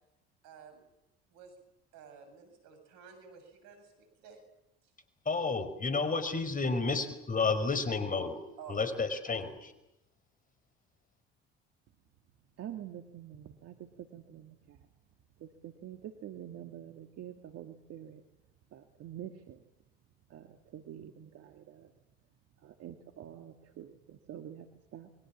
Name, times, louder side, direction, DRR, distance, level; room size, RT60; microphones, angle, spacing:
voice 1, 0.4-0.8 1.3-1.5 1.9-4.4 8.6-8.8 9.3-9.4, right 6 dB, 70° right, 8 dB, 7.4 m, -52 dB
voice 2, 5.2-8.4 8.7-9.7, left 4 dB, 25° left, 11 dB, 4.9 m, -31 dB
voice 3, 12.6-14.8 15.4-18.2 18.7-19.6 20.3-21.9 22.6-25.1, right 10 dB, 55° right, 6 dB, 2.2 m, -47 dB
29.0 x 23.0 x 7.3 m, 0.87 s
hypercardioid pair, 70°, 30 cm